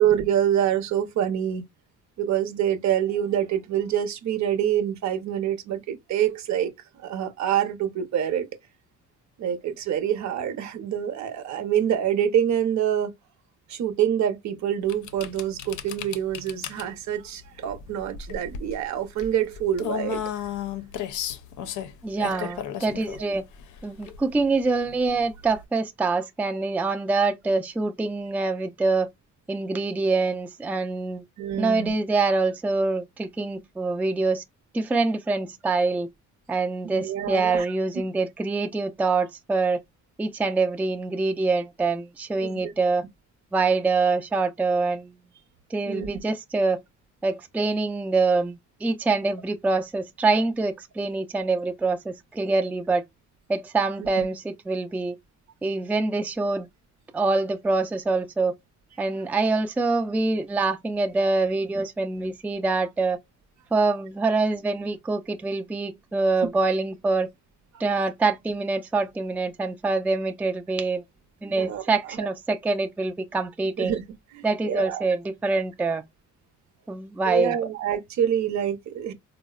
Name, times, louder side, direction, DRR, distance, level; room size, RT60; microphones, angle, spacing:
voice 1, 0.0-1.7 2.2-6.7 7.0-8.5 9.4-13.1 13.7-20.2 22.2-22.5 31.4-31.9 36.8-37.7 42.4-42.7 45.9-46.1 54.0-54.1 71.6-71.8 72.1-72.3 73.8-74.0 74.3-75.1 77.2-79.1, right 10 dB, 65° right, 0.7 m, -26 dB
sound 1, 14.9-25.6, left 9 dB, 75° left, 0.5 m, -35 dB
voice 2, 22.0-23.4 23.8-29.1 29.5-31.2 31.6-34.4 34.7-36.1 36.5-39.8 40.2-43.0 43.5-45.1 45.7-46.8 47.2-53.0 53.5-55.2 55.6-56.7 57.1-58.5 59.0-63.2 63.7-67.3 67.8-71.0 71.4-74.0 74.4-76.0 76.9-77.6, right 3 dB, 5° right, 0.3 m, -25 dB
3.8 x 2.0 x 2.3 m
cardioid pair, 90°, 30 cm